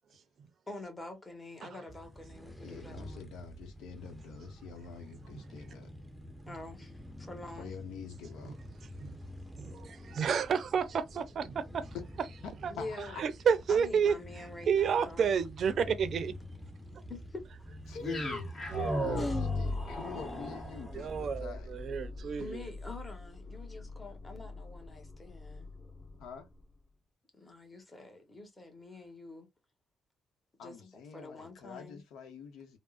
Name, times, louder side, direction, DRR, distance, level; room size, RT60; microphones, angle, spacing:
voice 1, 0.7-3.3 6.4-7.7 12.7-13.2 13.7-15.4 17.1-17.7 19.2-19.4 22.4-25.7 27.4-29.5 30.6-32.0, left 2 dB, 20° left, 1.0 m, -46 dB
sound 1, 1.9-21.4, equal, ahead, 0.6 m, -48 dB
voice 2, 2.6-5.9 7.6-8.6 12.8-13.2 17.9-21.7 26.2-26.5 30.6-32.8, left 5 dB, 90° left, 0.8 m, -46 dB
voice 3, 9.6-11.9 13.2-14.1 14.7-16.3 18.7-19.3 20.9-22.6, right 7 dB, 60° right, 0.5 m, -30 dB
sound 2, 18.0-26.2, left 2 dB, 50° left, 1.4 m, -38 dB
3.5 x 2.0 x 2.4 m
cardioid pair, 90°, 0 cm